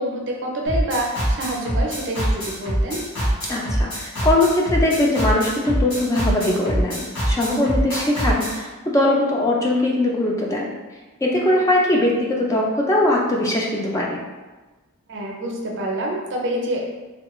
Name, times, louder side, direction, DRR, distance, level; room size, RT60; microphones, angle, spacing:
voice 1, 0.0-3.0 11.4-11.5 15.1-16.8, right 1 dB, 55° right, -1 dB, 0.6 m, -27 dB
sound 1, 0.7-8.6, equal, 85° left, 1.5 m, -23 dB
voice 2, 3.5-10.7 11.2-14.2, left 1 dB, 15° left, -2 dB, 0.3 m, -21 dB
3.1 x 2.2 x 2.9 m, 1.2 s
head